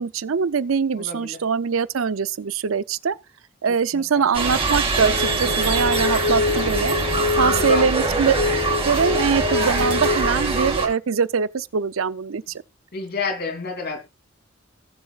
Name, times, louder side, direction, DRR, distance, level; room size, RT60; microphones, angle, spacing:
voice 1, 0.0-3.2 3.6-7.0 7.4-8.3 8.8-12.4, right 6 dB, 85° right, 0.6 m, -23 dB
voice 2, 1.0-1.4 3.9-4.2 7.4-7.9 12.9-14.0, left 4 dB, 55° left, 3.2 m, -30 dB
sound 1, 4.3-10.9, right 3 dB, 30° right, 2.8 m, -24 dB
sound 2, 5.0-10.4, left 4 dB, 75° left, 1.1 m, -25 dB
18.5 x 7.2 x 2.4 m
head